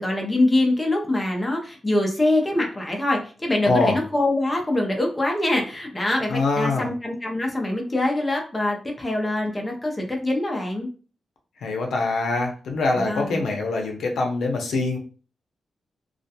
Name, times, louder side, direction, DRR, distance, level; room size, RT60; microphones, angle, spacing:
voice 1, 0.0-10.9 12.9-13.4, left 1 dB, 15° left, 0 dB, 0.5 m, -24 dB
voice 2, 6.3-6.9 11.6-15.0, left 3 dB, 85° left, 1 dB, 0.5 m, -24 dB
2.3 x 2.2 x 2.7 m, 0.38 s
wide cardioid pair, 145°, 0 cm